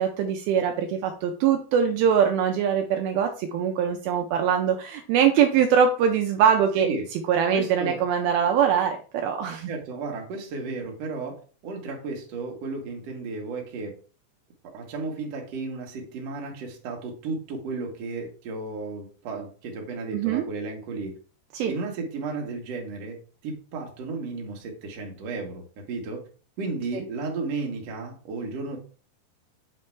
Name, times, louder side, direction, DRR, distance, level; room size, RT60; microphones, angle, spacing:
voice 1, 0.0-6.9 7.3-9.7 20.1-20.4 21.5-21.7 26.9-27.0, right 8 dB, 90° right, 4 dB, 2.2 m, -22 dB
voice 2, 6.8-7.1 7.5-8.0 9.7-14.0 14.7-21.2 21.6-23.2 23.4-26.2 26.6-28.8, right 3 dB, 65° right, 1 dB, 1.6 m, -33 dB
7.6 x 3.2 x 4.5 m, 0.39 s
omnidirectional pair, 5.0 m